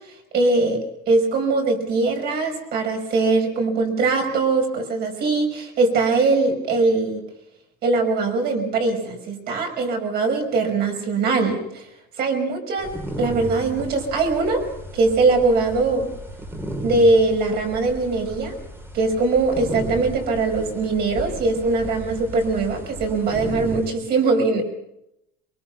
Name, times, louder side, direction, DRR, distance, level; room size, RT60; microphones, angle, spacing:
voice 1, 0.3-0.8 1.1-7.2 7.8-11.9 12.2-12.9 13.2-14.6 14.9-16.1 16.8-18.6 18.9-24.6, right 3 dB, 50° right, 3 dB, 5.8 m, -21 dB
sound 1, 12.8-23.9, right 1 dB, 10° right, 2.5 m, -35 dB
23.5 x 23.5 x 5.9 m, 0.85 s
cardioid pair, 150°, 21 cm